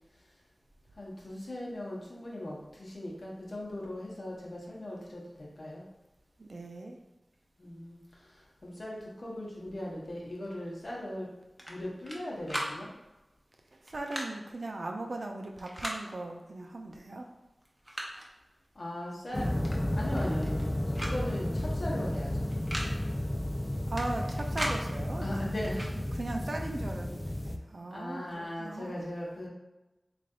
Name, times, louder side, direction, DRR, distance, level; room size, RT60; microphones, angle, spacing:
voice 1, 1.0-5.8 7.6-11.3 11.6-12.9 18.7-19.6 19.9-22.5 25.2-25.8 27.9-29.5, left 1 dB, 60° left, -4 dB, 1.1 m, -39 dB
voice 2, 6.4-7.0 13.7-17.3 23.9-25.9 26.2-29.1, right 2 dB, 65° right, 2 dB, 0.5 m, -39 dB
sound 1, 11.6-12.2 12.5-12.7 13.9-14.3 15.6-16.0 17.1-17.2 17.6-18.3 19.6-19.8 20.1-20.7 21.0-21.2 21.4-21.5 22.5-22.9 24.0-24.8 25.6-25.9, equal, 5° right, 0.8 m, -37 dB
sound 2, 19.3-27.6, left 1 dB, 25° left, 0.3 m, -32 dB
3.3 x 2.6 x 3.7 m, 1.0 s
wide cardioid pair, 55°, 0 cm